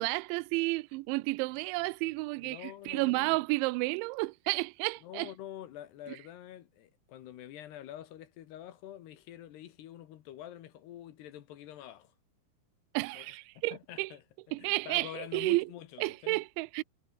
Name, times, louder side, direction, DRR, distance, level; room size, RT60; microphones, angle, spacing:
voice 1, 0.0-5.3 12.9-14.1 14.5-15.7 16.0-16.8, right 24 dB, 85° right, 2.9 m, -31 dB
voice 2, 2.4-3.4 5.0-12.1 13.1-14.2 14.6-16.4, left 12 dB, 70° left, 3.4 m, -47 dB
omnidirectional pair, 5.3 m